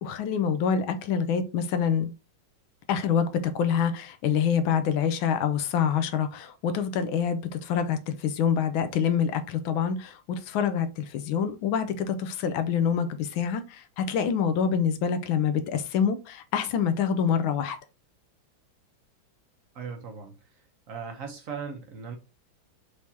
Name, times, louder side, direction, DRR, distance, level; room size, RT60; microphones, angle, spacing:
voice 1, 0.0-2.1 2.9-17.8, left 7 dB, 85° left, 1.4 m, -26 dB
voice 2, 19.7-20.3 20.9-22.2, right 6 dB, 60° right, 0.9 m, -38 dB
4.7 x 3.3 x 2.7 m
omnidirectional pair, 2.2 m